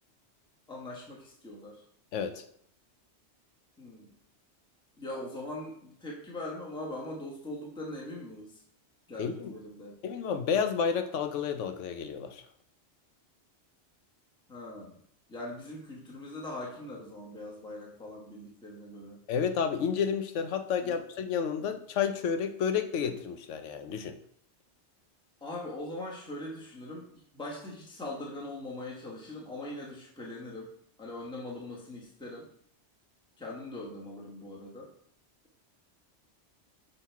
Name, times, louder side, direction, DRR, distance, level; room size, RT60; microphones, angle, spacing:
voice 1, 0.7-1.8 3.8-4.1 5.0-8.6 9.1-10.0 14.5-15.0 15.3-19.2 20.8-21.0 21.6-21.7 25.4-27.1 27.3-30.7 31.0-32.5 33.4-34.9, left 1 dB, 5° left, -3 dB, 1.2 m, -41 dB
voice 2, 2.1-2.4 9.2-9.6 10.0-12.4 19.3-24.2, left 7 dB, 90° left, 9 dB, 1.0 m, -31 dB
6.4 x 3.9 x 4.6 m, 0.64 s
omnidirectional pair, 1.2 m